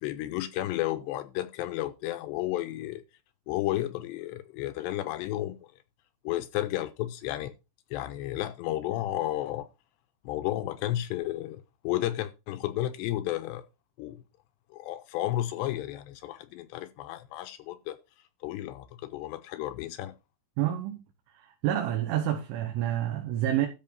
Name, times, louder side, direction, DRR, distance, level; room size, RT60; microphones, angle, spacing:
voice 1, 0.0-3.0 3.5-5.6 6.2-7.5 7.9-9.7 10.2-13.6 14.0-14.2 14.7-18.0 18.4-20.1, left 14 dB, 80° left, 2.6 m, -32 dB
voice 2, 20.6-21.0 21.4-23.7, right 12 dB, 85° right, 3.7 m, -28 dB
13.0 x 4.7 x 5.4 m
omnidirectional pair, 5.4 m